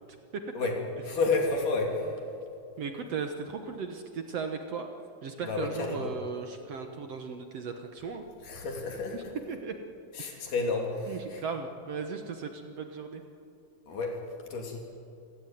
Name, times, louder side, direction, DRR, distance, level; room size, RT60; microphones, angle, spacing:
voice 1, 1.0-2.1 5.4-6.1 8.5-9.2 10.2-11.4 13.9-14.2 14.5-14.8, left 3 dB, 70° left, 1 dB, 4.7 m, -30 dB
voice 2, 2.8-4.9 5.2-8.2 9.1-9.8 10.3-10.4 11.1-13.2, right 5 dB, 60° right, 5 dB, 1.9 m, -37 dB
28.0 x 16.5 x 9.3 m, 2.6 s
omnidirectional pair, 3.9 m